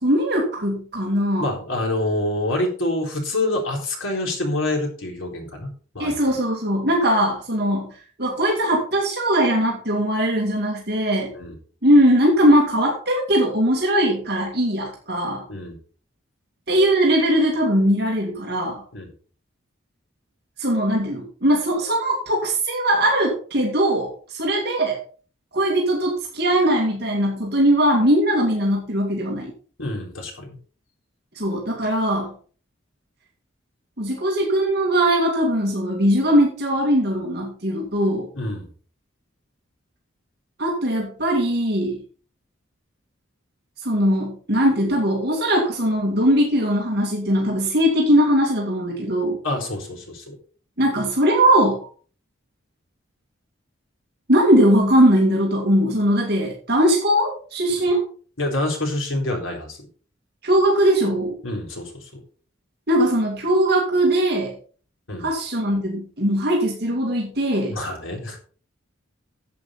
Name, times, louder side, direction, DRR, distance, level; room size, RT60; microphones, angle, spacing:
voice 1, 0.0-1.5 6.0-7.9 8.2-11.3 11.8-15.5 16.7-18.8 20.6-25.0 25.5-29.5 31.4-32.3 34.0-38.3 40.6-42.0 43.8-49.4 50.8-51.9 54.3-58.0 60.4-61.4 62.9-64.6 65.2-67.8, equal, 50° right, -2 dB, 2.4 m, -20 dB
voice 2, 1.4-6.2 11.3-11.5 15.5-15.8 18.9-19.1 29.8-30.6 38.3-38.7 49.4-50.4 58.4-59.8 61.4-62.1 65.1-65.3 67.7-68.4, left 1 dB, 80° left, 1 dB, 3.9 m, -26 dB
11.0 x 8.1 x 4.4 m, 0.41 s
head